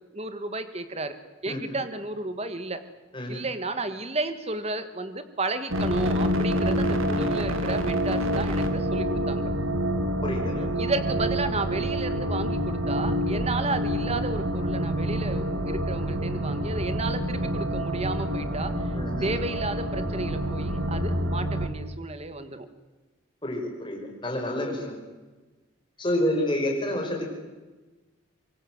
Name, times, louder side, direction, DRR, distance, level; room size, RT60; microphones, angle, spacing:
voice 1, 0.1-1.2 1.4-2.8 3.3-9.5 10.8-18.7 19.2-22.7, right 2 dB, 30° right, 10 dB, 1.6 m, -32 dB
voice 2, 3.1-3.5 10.2-10.7 18.9-19.3 23.4-25.0 26.0-27.3, left 1 dB, 25° left, 1 dB, 5.5 m, -29 dB
sound 1, 5.7-21.7, equal, 80° right, 2.9 m, -27 dB
24.5 x 22.5 x 7.8 m, 1.2 s
head